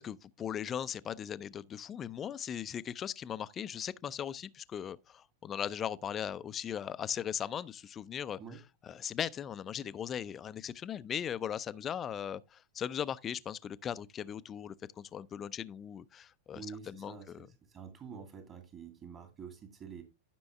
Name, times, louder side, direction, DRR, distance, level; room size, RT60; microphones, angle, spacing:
voice 1, 0.0-8.4 8.8-17.5, left 9 dB, 25° left, 0.5 m, -38 dB
voice 2, 16.5-17.4 17.7-20.0, right 6 dB, 30° right, 2.4 m, -47 dB
13.0 x 6.1 x 3.3 m
figure-of-eight pair, 90°, 0 cm